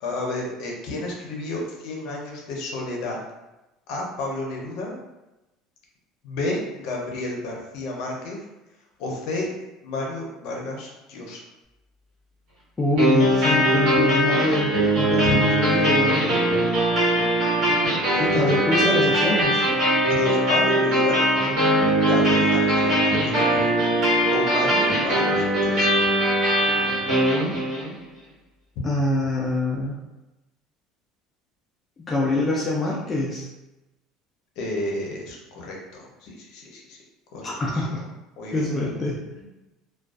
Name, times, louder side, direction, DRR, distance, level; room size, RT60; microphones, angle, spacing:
voice 1, 0.0-3.2 3.9-4.9 6.2-8.4 9.0-9.5 9.8-11.4 15.2-15.4 17.6-19.0 20.1-21.2 22.0-23.4 24.3-26.0 34.6-37.0 37.3-37.8 38.4-38.7, left 2 dB, 60° left, -1 dB, 0.6 m, -31 dB
voice 2, 12.8-16.3 18.2-19.6 28.8-30.0 32.1-33.4 37.4-38.0 38.5-39.5, left 1 dB, 15° left, -4 dB, 0.3 m, -24 dB
sound 1, 13.0-27.9, right 1 dB, 55° right, 1.2 m, -21 dB
2.4 x 2.2 x 2.3 m, 1.0 s
cardioid pair, 165°, 0 cm